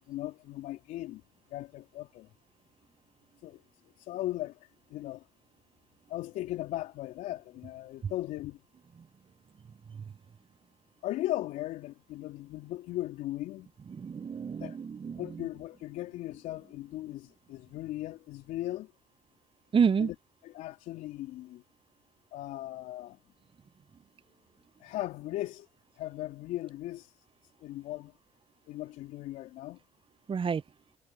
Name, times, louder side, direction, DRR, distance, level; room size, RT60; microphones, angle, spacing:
voice 1, 0.1-1.2 1.5-2.3 3.4-3.6 4.0-5.3 6.1-8.6 11.0-13.7 14.6-14.8 15.2-18.9 20.0-20.2 20.4-21.6 22.3-23.2 24.8-25.7 26.0-27.1 27.6-28.1 28.7-29.8, left 15 dB, 75° left, 3.5 m, -38 dB
voice 2, 14.0-15.2 19.7-20.1 30.3-30.6, right 6 dB, 40° right, 1.2 m, -28 dB
hypercardioid pair, 45°, 13 cm